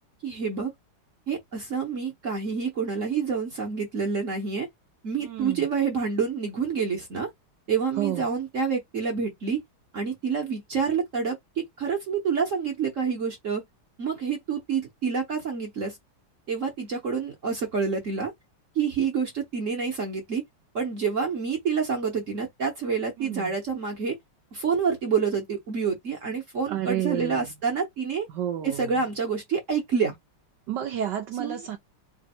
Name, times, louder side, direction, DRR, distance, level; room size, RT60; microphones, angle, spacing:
voice 1, 0.2-0.7 1.3-4.7 5.0-7.3 7.7-9.6 9.9-13.6 14.0-15.9 16.5-18.3 18.7-20.4 20.7-24.2 24.5-28.2 28.6-30.1 31.4-31.6, right 6 dB, 45° right, 1.1 m, -28 dB
voice 2, 5.2-5.7 8.0-8.3 23.2-23.5 26.7-27.5 28.3-28.9 30.7-31.8, right 10 dB, 70° right, 1.1 m, -31 dB
3.4 x 2.7 x 4.2 m
omnidirectional pair, 2.3 m